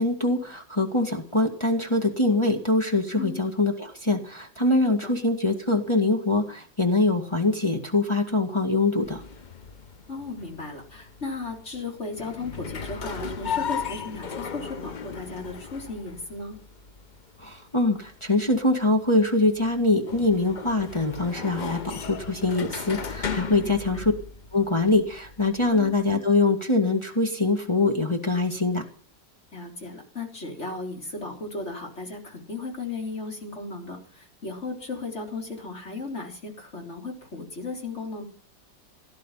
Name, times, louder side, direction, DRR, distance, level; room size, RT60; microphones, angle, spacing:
voice 1, 0.0-9.2 17.4-24.1 24.5-28.8, left 2 dB, 15° left, 2 dB, 1.9 m, -23 dB
sound 1, 9.0-26.1, left 6 dB, 75° left, 0.4 m, -37 dB
voice 2, 10.1-16.6 23.6-24.1 25.7-25.9 29.5-38.2, left 3 dB, 35° left, 1 dB, 3.9 m, -36 dB
17.5 x 12.0 x 5.7 m, 0.43 s
omnidirectional pair, 2.0 m